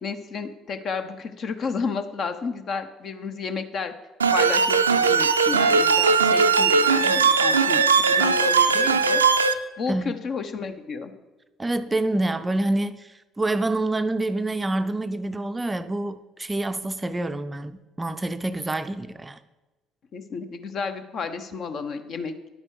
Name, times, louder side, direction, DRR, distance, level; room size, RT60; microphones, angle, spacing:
voice 1, 0.0-3.9 4.3-9.2 9.8-11.1 20.1-22.3, left 5 dB, 45° left, 9 dB, 0.9 m, -32 dB
sound 1, 4.2-9.5, right 5 dB, 80° right, 0.4 m, -19 dB
voice 2, 11.6-13.1 13.4-19.4, right 2 dB, 15° right, 11 dB, 0.5 m, -27 dB
10.5 x 8.5 x 4.7 m, 1.1 s
figure-of-eight pair, 55°, 0 cm